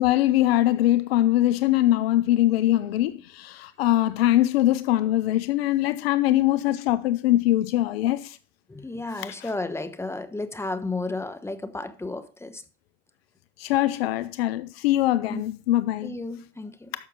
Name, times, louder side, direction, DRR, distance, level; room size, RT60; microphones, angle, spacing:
voice 1, 0.0-8.4 13.6-16.1, left 14 dB, 80° left, 0.6 m, -22 dB
voice 2, 8.7-12.6 15.3-15.4 16.0-16.9, left 2 dB, 10° left, 1.0 m, -33 dB
10.5 x 6.5 x 3.7 m
hypercardioid pair, 90°, 30 cm